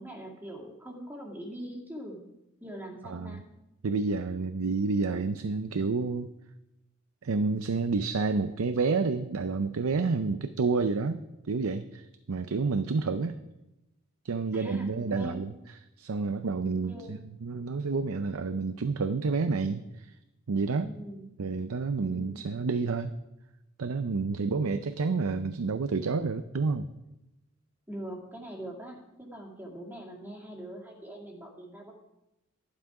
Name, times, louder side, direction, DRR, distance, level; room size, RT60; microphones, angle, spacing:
voice 1, 0.0-2.2 2.6-3.5 14.5-15.4 16.9-17.2 20.8-21.3 22.0-22.5 27.9-31.9, right 1 dB, 10° right, -2 dB, 2.1 m, -42 dB
voice 2, 3.0-3.4 3.8-6.3 7.2-13.4 14.2-20.1 20.5-20.9 21.4-23.1 23.8-26.9, right 4 dB, 80° right, 10 dB, 0.6 m, -29 dB
12.0 x 11.5 x 4.9 m, 0.93 s
head